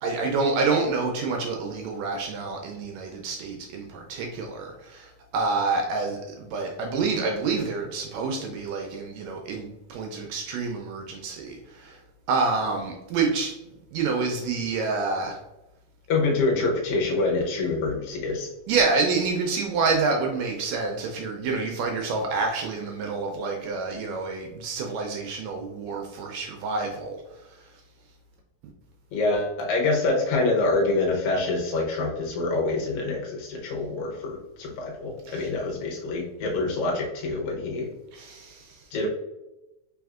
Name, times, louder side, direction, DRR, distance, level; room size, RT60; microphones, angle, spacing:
voice 1, 0.0-12.0 12.3-13.5 13.9-15.4 18.7-27.5 35.2-35.5 38.1-38.9, right 4 dB, 80° right, 2 dB, 1.6 m, -28 dB
voice 2, 16.1-18.5 29.1-37.9 38.9-39.1, left 3 dB, 70° left, -2 dB, 1.5 m, -26 dB
4.3 x 3.4 x 2.3 m, 0.94 s
omnidirectional pair, 3.5 m